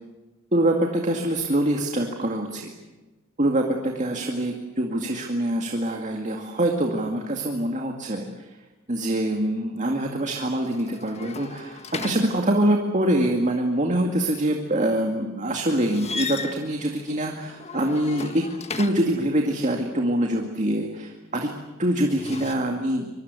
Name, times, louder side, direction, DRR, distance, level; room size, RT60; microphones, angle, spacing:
voice 1, 0.5-2.7 3.4-8.6 8.9-18.4 18.8-21.5 21.8-23.1, right 1 dB, 35° right, 2 dB, 2.2 m, -24 dB
sound 1, 10.5-12.9 15.7-19.3 21.9-22.5, left 4 dB, 30° left, 1.5 m, -36 dB
25.0 x 23.0 x 8.3 m, 1.2 s
head